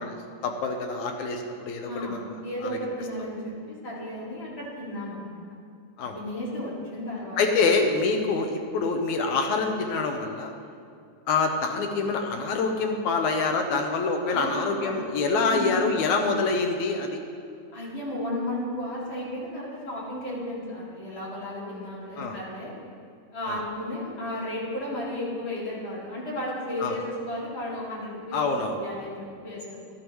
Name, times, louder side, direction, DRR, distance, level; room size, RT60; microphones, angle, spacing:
voice 1, 0.0-2.4 6.0-6.2 7.4-10.5 11.3-17.2 22.2-22.4 23.5-23.6 26.8-27.0 28.3-28.8, left 4 dB, 75° left, 3 dB, 2.1 m, -26 dB
voice 2, 1.9-5.4 6.1-7.6 14.3-14.9 15.3-15.9 17.7-22.7 23.3-29.8, left 1 dB, 40° left, -7 dB, 3.0 m, -34 dB
12.5 x 11.5 x 3.1 m, 2.4 s
omnidirectional pair, 3.6 m